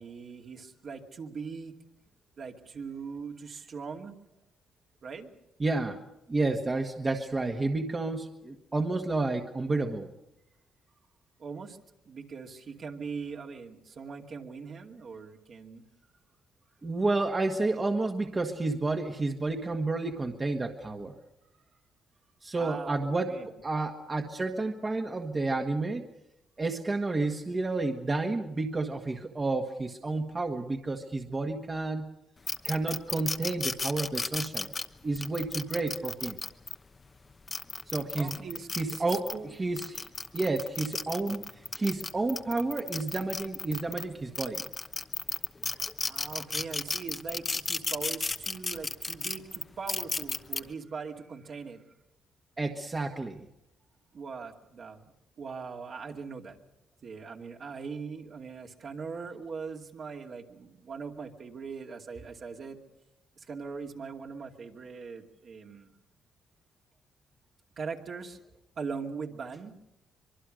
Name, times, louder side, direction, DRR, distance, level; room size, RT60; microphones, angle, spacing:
voice 1, 0.0-1.8 2.4-4.1 5.0-5.3 11.4-11.8 12.1-15.8 22.6-23.5 38.1-39.5 46.1-51.8 54.1-56.6 57.0-62.8 63.4-65.9 67.8-68.4 68.8-69.8, right 5 dB, 55° right, 2 dB, 2.4 m, -41 dB
voice 2, 5.6-6.0 6.3-10.1 16.8-21.1 22.4-26.0 26.6-32.1 32.6-34.7 35.0-36.4 37.9-38.4 38.8-39.3 39.6-40.1 40.3-41.4 41.7-44.6 52.6-53.5, right 3 dB, 25° right, 3 dB, 1.6 m, -30 dB
sound 1, 32.5-36.7 37.3-39.4 39.8-44.0 44.3-50.6, left 3 dB, 25° left, 1.0 m, -33 dB
24.5 x 22.5 x 6.5 m, 0.88 s
cardioid pair, 90°, 0 cm